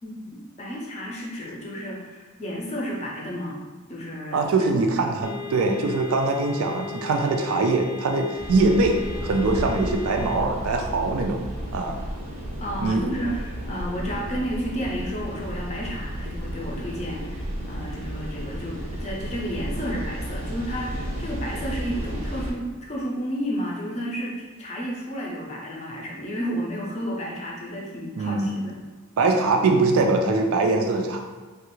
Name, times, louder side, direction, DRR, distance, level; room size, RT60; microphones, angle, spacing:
voice 1, 0.0-3.6 3.9-4.8 12.6-28.8, equal, 30° left, -2 dB, 0.6 m, -32 dB
voice 2, 4.3-11.4 11.7-12.0 12.8-13.1 28.2-28.5 29.2-31.2, right 3 dB, 70° right, 3 dB, 0.3 m, -22 dB
sound 1, 5.2-10.4, left 8 dB, 85° left, 0.4 m, -37 dB
sound 2, 8.4-22.5, equal, 30° right, 0.6 m, -33 dB
3.2 x 2.4 x 3.0 m, 1.4 s
head